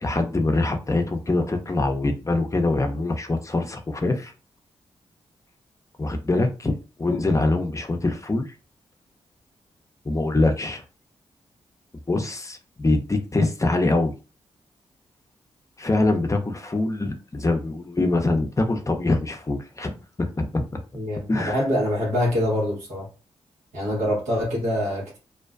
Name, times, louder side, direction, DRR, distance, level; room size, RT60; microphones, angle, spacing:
voice 1, 0.0-4.3 6.0-8.4 10.1-10.8 12.1-14.1 15.8-20.6 21.3-21.6, left 2 dB, 25° left, 5 dB, 0.5 m, -24 dB
voice 2, 20.9-23.1 23.7-25.2, left 1 dB, 90° right, -5 dB, 1.1 m, -25 dB
2.5 x 2.1 x 2.3 m, 0.33 s
supercardioid pair, 45°, 12 cm